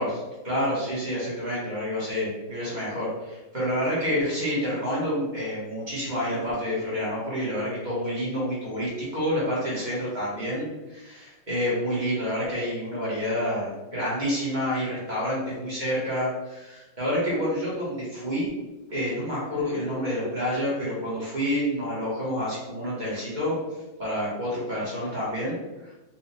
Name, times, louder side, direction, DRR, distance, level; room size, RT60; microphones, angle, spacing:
voice 1, 0.0-18.5 18.9-23.6 24.0-25.6 25.8-25.9, equal, 30° right, -8 dB, 1.1 m, -28 dB
4.2 x 2.4 x 2.7 m, 1.1 s
omnidirectional pair, 2.0 m